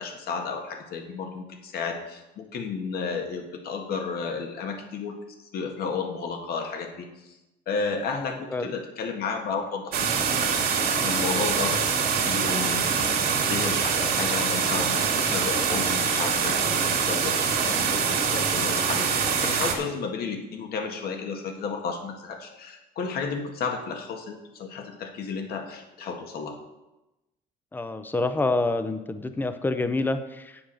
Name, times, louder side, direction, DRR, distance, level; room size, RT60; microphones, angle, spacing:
voice 1, 0.0-5.2 5.5-7.4 7.7-10.1 11.0-13.2 13.5-26.6, left 5 dB, 65° left, 3 dB, 1.7 m, -32 dB
voice 2, 8.2-8.7 27.7-30.6, left 2 dB, 10° left, 10 dB, 0.7 m, -27 dB
sound 1, 9.9-19.7, right 6 dB, 70° right, 2.1 m, -24 dB
8.7 x 7.1 x 6.4 m, 0.99 s
cardioid pair, 110°, 17 cm